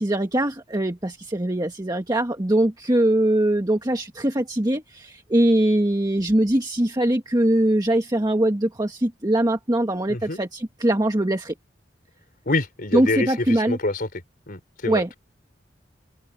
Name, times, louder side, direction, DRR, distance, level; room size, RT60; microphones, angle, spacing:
voice 1, 0.0-11.5 12.9-13.8 14.9-15.1, right 1 dB, 20° right, 1.5 m, -22 dB
voice 2, 10.1-10.4 12.5-14.1 14.5-15.0, left 2 dB, 50° left, 3.8 m, -26 dB
open air
head